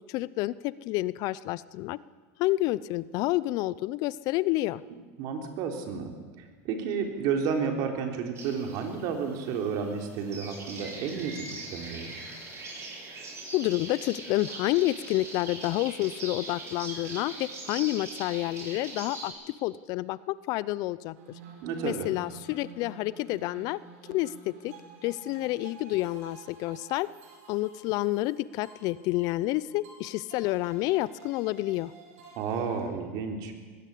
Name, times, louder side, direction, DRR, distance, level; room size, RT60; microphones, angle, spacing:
voice 1, 0.0-2.0 2.4-4.8 13.5-19.3 19.6-21.1 21.8-23.8 24.1-24.7 25.0-27.1 27.5-31.9, left 17 dB, 55° left, 19 dB, 0.6 m, -29 dB
voice 2, 5.2-6.1 6.4-12.2 21.6-22.1 32.4-33.5, right 6 dB, 55° right, 4 dB, 3.7 m, -31 dB
sound 1, 8.4-19.3, right 2 dB, 35° right, 7.7 m, -42 dB
sound 2, 21.2-32.8, right 5 dB, 80° right, 5.1 m, -51 dB
20.5 x 16.0 x 8.5 m, 1.4 s
supercardioid pair, 120°, 8 cm